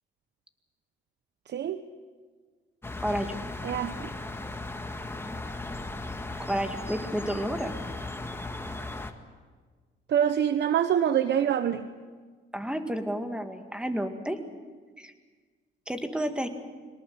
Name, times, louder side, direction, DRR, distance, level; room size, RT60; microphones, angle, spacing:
voice 1, 1.5-1.8 3.6-4.1 10.1-11.9, right 9 dB, 60° right, 11 dB, 0.9 m, -25 dB
sound 1, 2.8-9.1, left 2 dB, 10° left, 1.7 m, -37 dB
voice 2, 3.0-3.4 6.4-7.7 12.5-14.4 15.0-15.1 15.9-16.5, equal, 5° right, 6 dB, 2.2 m, -31 dB
23.0 x 19.0 x 7.9 m, 1.5 s
cardioid pair, 90°, 20 cm